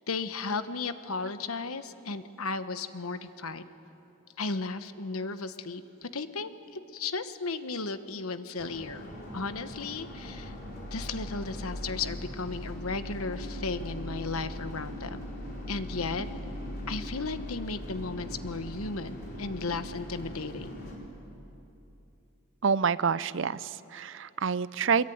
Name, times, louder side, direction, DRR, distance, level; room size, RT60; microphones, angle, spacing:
voice 1, 0.1-3.6 4.4-9.1 9.3-10.5 10.9-15.2 15.7-16.3 16.9-20.7, left 4 dB, 85° left, 11 dB, 1.1 m, -35 dB
sound 1, 8.6-20.9, left 1 dB, 45° left, 4.9 m, -40 dB
voice 2, 22.6-25.1, right 6 dB, 60° right, 17 dB, 0.5 m, -27 dB
24.5 x 22.0 x 9.3 m, 2.9 s
head